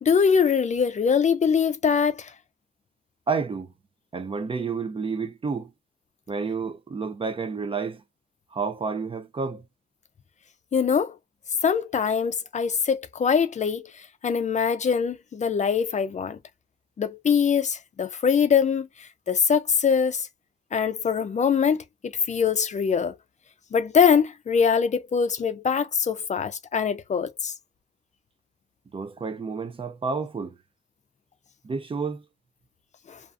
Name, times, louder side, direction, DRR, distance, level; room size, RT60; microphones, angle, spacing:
voice 1, 0.0-2.3 10.7-11.2 11.6-16.4 17.0-20.3 20.7-23.2 23.7-27.5 33.1-33.2, left 6 dB, 45° left, 0.4 m, -23 dB
voice 2, 3.3-3.7 4.1-5.7 6.3-8.0 8.5-9.6 28.9-30.6 31.6-32.3, right 5 dB, 30° right, 0.3 m, -30 dB
2.4 x 2.4 x 2.4 m
wide cardioid pair, 150°, 17 cm